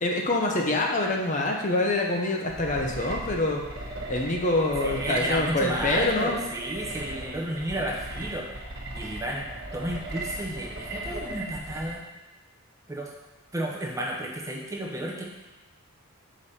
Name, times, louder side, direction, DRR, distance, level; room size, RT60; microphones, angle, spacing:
voice 1, 0.0-3.6 4.1-6.4, left 2 dB, 35° left, 0 dB, 0.8 m, -25 dB
sound 1, 2.5-11.9, right 1 dB, 50° right, 1.2 m, -37 dB
voice 2, 4.8-8.5 8.9-9.5 9.7-12.0 12.9-13.1 13.5-15.2, right 1 dB, 15° right, -1 dB, 0.7 m, -32 dB
6.7 x 5.1 x 4.3 m, 1.1 s
head